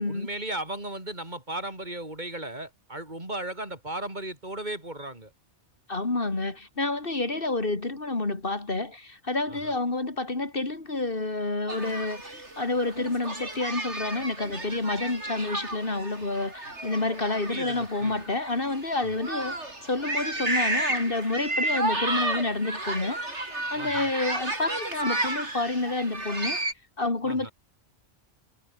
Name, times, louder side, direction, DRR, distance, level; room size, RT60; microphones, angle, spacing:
voice 1, 0.1-5.3 9.5-9.7 17.5-18.3 23.7-24.1 27.2-27.5, right 1 dB, 40° right, 5.5 m, -36 dB
voice 2, 5.9-19.6 19.8-23.2 23.7-26.6 27.0-27.5, left 2 dB, 50° left, 3.0 m, -29 dB
sound 1, 11.7-26.7, right 2 dB, 75° right, 5.7 m, -32 dB
omnidirectional pair, 1.2 m